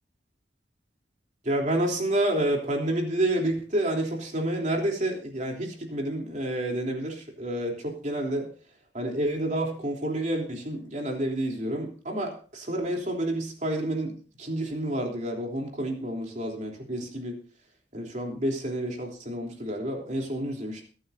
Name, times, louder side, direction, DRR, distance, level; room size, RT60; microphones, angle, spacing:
voice 1, 1.4-8.5 8.9-17.4 17.9-20.8, right 1 dB, 45° right, 1 dB, 3.3 m, -29 dB
22.5 x 9.5 x 2.7 m, 0.41 s
head